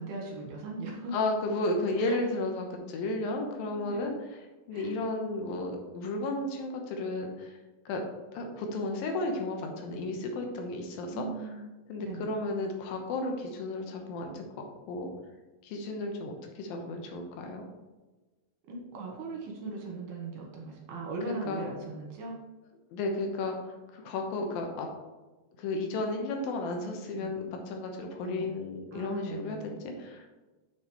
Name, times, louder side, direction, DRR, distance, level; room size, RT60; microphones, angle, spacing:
voice 1, 0.0-1.1 2.0-2.2 3.5-4.2 4.7-5.0 11.1-11.6 12.0-12.3 18.7-22.4 26.8-27.3 28.2-28.5 28.9-29.7, right 3 dB, 65° right, -1 dB, 2.5 m, -39 dB
voice 2, 1.1-4.1 4.7-7.6 7.9-8.0 8.3-11.2 11.9-15.1 15.6-17.6 21.5-21.6 22.9-24.9 25.6-30.3, left 2 dB, 80° left, 3 dB, 2.6 m, -33 dB
6.6 x 6.5 x 3.2 m, 1.2 s
omnidirectional pair, 4.2 m